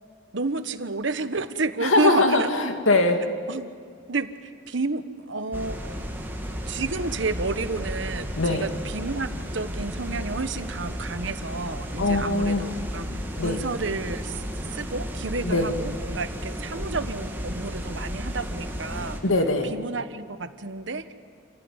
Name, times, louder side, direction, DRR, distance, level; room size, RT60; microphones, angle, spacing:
voice 1, 0.3-2.5 3.5-3.7 4.1-5.8 6.7-19.2 19.7-21.1, right 3 dB, 65° right, 11 dB, 1.2 m, -30 dB
voice 2, 1.8-3.3 8.4-8.7 12.0-12.7 13.4-13.6 15.4-15.7 19.2-19.7, left 2 dB, 85° left, 5 dB, 2.4 m, -22 dB
sound 1, 5.5-19.2, equal, 10° right, 2.3 m, -33 dB
28.0 x 17.0 x 9.8 m, 2.2 s
head